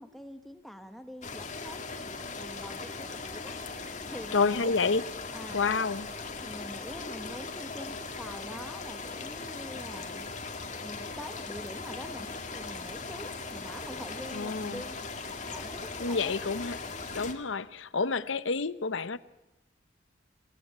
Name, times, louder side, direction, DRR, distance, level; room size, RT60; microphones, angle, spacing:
voice 1, 0.0-1.8 2.4-3.6 4.1-4.8 5.3-5.6 6.4-10.3 10.8-15.0 15.5-16.3, equal, ahead, 1.2 m, -44 dB
sound 1, 1.2-17.3, left 4 dB, 40° left, 2.1 m, -39 dB
voice 2, 4.3-5.0 5.5-6.1 14.3-14.8 16.0-16.8 17.1-19.2, left 4 dB, 85° left, 0.8 m, -29 dB
sound 2, 8.2-17.2, right 1 dB, 65° right, 5.0 m, -59 dB
26.5 x 17.0 x 8.6 m
head